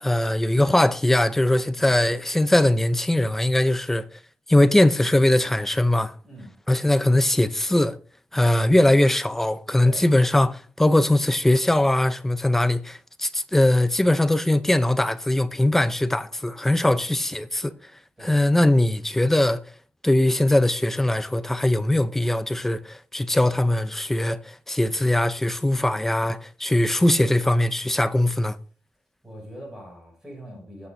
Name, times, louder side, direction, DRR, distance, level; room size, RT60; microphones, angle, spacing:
voice 1, 0.0-4.1 4.5-6.1 6.7-8.0 8.3-17.7 18.2-19.6 20.0-28.6, left 1 dB, 10° left, 0.6 m, -21 dB
voice 2, 29.2-30.9, equal, 10° right, 6.4 m, -42 dB
21.0 x 8.6 x 2.6 m
wide cardioid pair, 165°, 4 cm